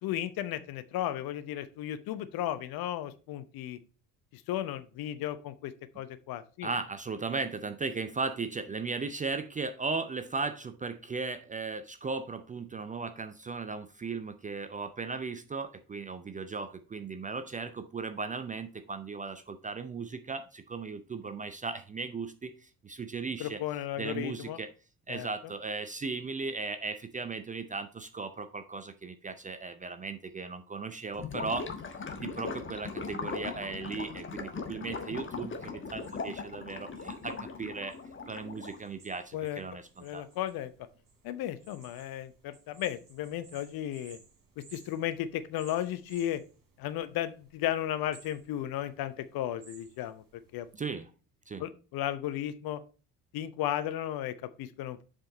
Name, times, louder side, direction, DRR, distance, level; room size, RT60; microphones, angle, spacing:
voice 1, 0.0-3.8 4.3-6.7 23.4-24.6 25.1-25.3 39.3-39.6 40.0-40.7 41.2-44.2 44.6-46.4 46.8-50.2 50.5-50.7 51.6-52.8 53.3-55.0, left 12 dB, 45° left, 12 dB, 0.8 m, -34 dB
voice 2, 6.6-23.6 24.0-24.7 25.1-31.7 32.1-38.0 38.3-40.2 50.7-51.1 51.5-51.6, right 4 dB, 15° right, 10 dB, 0.5 m, -37 dB
Gurgling / Liquid, 31.1-38.9, left 4 dB, 25° left, 1.3 m, -39 dB
sound 1, 35.8-50.7, right 4 dB, 40° right, 3.6 m, -60 dB
7.4 x 5.1 x 4.0 m, 0.35 s
figure-of-eight pair, 50°, 49 cm